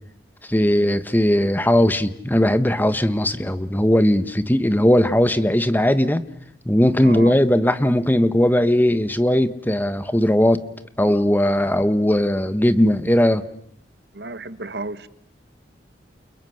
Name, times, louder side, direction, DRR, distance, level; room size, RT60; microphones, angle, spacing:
voice 1, 0.5-6.2 6.6-10.6 11.0-13.4, left 1 dB, 10° left, 1.3 m, -18 dB
voice 2, 7.0-7.4 14.1-15.1, right 2 dB, 65° right, 1.3 m, -32 dB
29.5 x 29.0 x 6.5 m
head